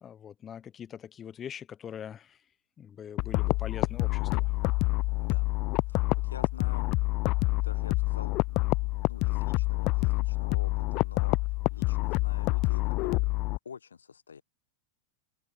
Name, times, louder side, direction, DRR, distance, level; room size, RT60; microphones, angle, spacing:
voice 1, 0.0-2.4 2.8-4.5, left 9 dB, 25° left, 1.1 m, -42 dB
sound 1, 3.2-13.6, left 24 dB, 40° left, 0.5 m, -27 dB
voice 2, 5.2-5.5 5.9-6.9 7.3-13.3 13.6-14.4, left 6 dB, 70° left, 1.4 m, -48 dB
figure-of-eight pair, 90°, 0 cm